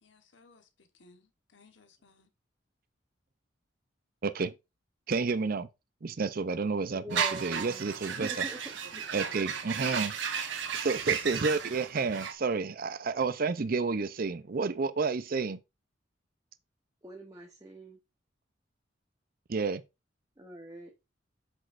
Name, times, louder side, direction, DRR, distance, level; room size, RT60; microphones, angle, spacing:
voice 1, 0.0-2.3 7.2-7.8, left 3 dB, 75° left, 1.2 m, -60 dB
voice 2, 4.2-4.5 5.1-5.7 6.0-8.4 9.1-10.1 10.7-15.6 19.5-19.8, right 4 dB, 50° right, 0.5 m, -30 dB
voice 3, 6.9-8.6 8.9-9.0 17.0-18.0 20.4-20.9, right 1 dB, 20° right, 0.9 m, -44 dB
sound 1, 7.1-12.3, right 7 dB, 75° right, 1.1 m, -34 dB
7.9 x 6.2 x 2.5 m
head